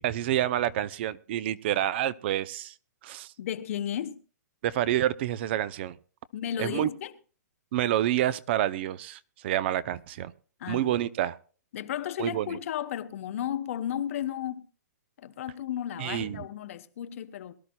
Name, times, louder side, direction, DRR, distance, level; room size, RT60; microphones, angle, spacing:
voice 1, 0.0-2.7 3.0-3.3 4.6-6.0 6.6-6.9 7.7-10.3 10.7-11.4 12.2-12.6 16.0-16.5, right 12 dB, 35° right, 0.6 m, -28 dB
voice 2, 3.4-4.2 6.3-7.1 10.6-11.0 11.7-14.7 15.2-17.5, left 10 dB, 50° left, 1.0 m, -34 dB
22.5 x 12.5 x 2.3 m
hypercardioid pair, 155°, 10 cm